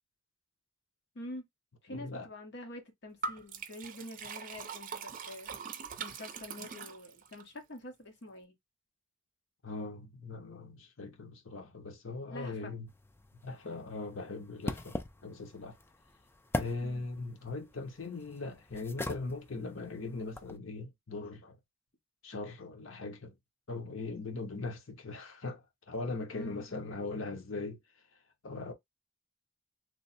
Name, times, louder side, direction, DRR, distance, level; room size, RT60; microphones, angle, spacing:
voice 1, 1.1-1.5 1.8-5.5 6.0-8.6 12.3-12.7 16.8-17.1 26.3-26.9, left 1 dB, 60° left, 1.1 m, -46 dB
voice 2, 1.9-2.3 9.6-12.9 13.4-15.0 15.2-15.8 16.5-21.6 22.2-23.4 23.7-27.8 28.4-28.7, left 3 dB, 85° left, 0.9 m, -40 dB
Liquid, 3.2-7.4, right 5 dB, 45° right, 0.5 m, -42 dB
sound 1, 12.9-20.6, left 2 dB, 10° left, 0.3 m, -42 dB
3.2 x 2.0 x 4.1 m
head